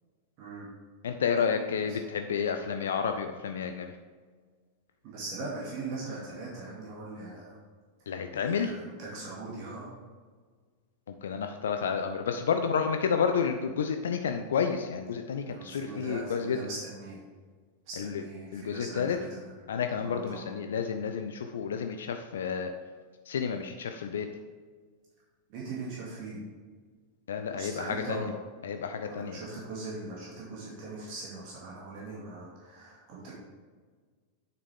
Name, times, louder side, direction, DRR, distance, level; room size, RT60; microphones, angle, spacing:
voice 1, 0.4-0.7 1.5-2.0 5.0-7.6 8.1-9.9 15.5-17.2 17.9-19.5 20.0-20.5 25.5-26.4 27.5-28.3 29.1-33.3, right 3 dB, 45° right, -5 dB, 2.2 m, -40 dB
voice 2, 1.0-4.0 8.1-8.7 11.1-16.6 18.0-18.2 18.5-19.2 19.7-22.7 23.3-24.3 27.3-28.3 28.6-29.4, left 6 dB, 65° left, 6 dB, 0.5 m, -30 dB
8.5 x 6.8 x 3.4 m, 1.5 s
figure-of-eight pair, 90°, 0 cm